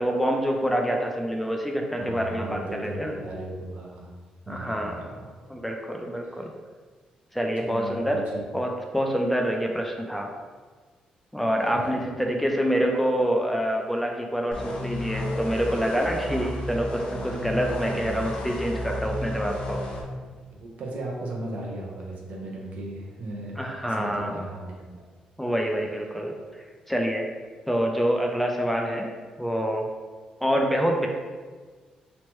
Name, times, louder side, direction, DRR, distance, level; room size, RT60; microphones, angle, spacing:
voice 1, 0.0-3.1 4.5-5.0 5.5-6.5 7.3-8.2 8.5-10.3 11.3-19.8 23.6-24.4 25.4-27.3 27.7-29.1 29.4-29.9 30.4-31.1, equal, 5° left, 1 dB, 0.3 m, -26 dB
voice 2, 1.9-4.1 4.5-5.3 6.3-6.5 7.6-8.5 11.6-12.0 20.1-23.5 23.9-25.0, right 1 dB, 70° right, -2 dB, 0.6 m, -37 dB
sound 1, 14.5-20.0, left 1 dB, 55° left, 0.5 m, -32 dB
3.1 x 2.0 x 3.0 m, 1.4 s
cardioid pair, 85°, 2 cm